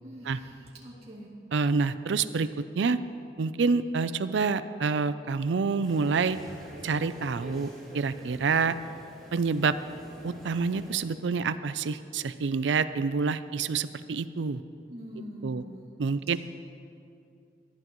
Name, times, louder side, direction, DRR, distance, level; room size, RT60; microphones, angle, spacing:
voice 1, 0.0-1.3 14.9-15.9, equal, 35° right, -6 dB, 2.4 m, -44 dB
voice 2, 1.5-3.0 3.4-6.4 6.8-8.8 9.3-9.7 10.2-14.6 15.4-15.6 16.0-16.4, right 4 dB, 80° right, 13 dB, 0.4 m, -27 dB
sound 1, 5.8-11.0, equal, ahead, 2.7 m, -47 dB
19.0 x 11.5 x 3.1 m, 2.5 s
head